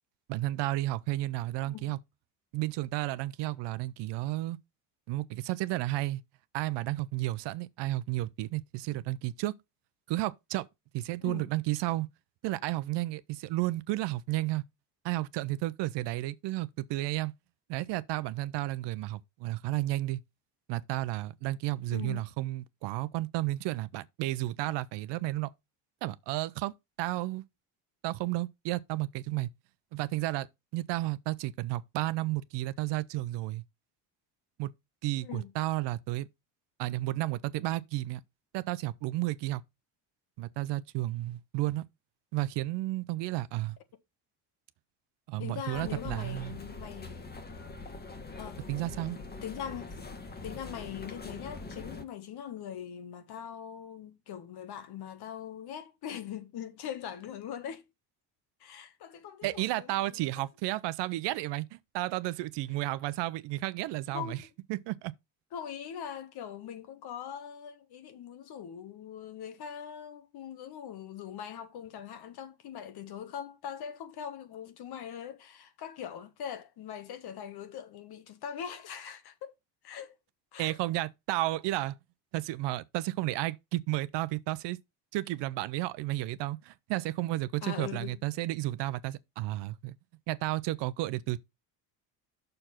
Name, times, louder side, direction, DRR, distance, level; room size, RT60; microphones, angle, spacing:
voice 1, 0.3-2.0 2.5-4.6 5.1-6.2 6.5-9.5 10.1-10.7 10.9-12.1 12.4-14.6 15.0-17.3 17.7-20.2 20.7-25.5 26.0-27.4 28.0-29.5 29.9-30.5 30.7-33.6 34.6-34.7 35.0-36.3 36.8-38.2 38.5-39.6 40.4-41.8 42.3-43.8 45.3-46.6 48.7-49.2 59.4-64.4 64.7-65.1 80.6-81.9 82.3-84.8 85.1-90.0 90.3-91.4, right 17 dB, 70° right, 0.7 m, -32 dB
voice 2, 1.6-2.0 11.2-11.5 21.9-22.3 35.2-35.5 45.4-47.2 48.4-48.6 49.4-50.0 50.4-57.9 58.6-60.5 64.1-64.3 65.5-79.5 79.8-80.1 80.5-80.8 87.6-88.2, left 9 dB, 60° left, 1.4 m, -41 dB
sound 1, 45.7-52.0, left 3 dB, 20° left, 1.4 m, -43 dB
6.6 x 4.5 x 5.7 m
supercardioid pair, 90°, 44 cm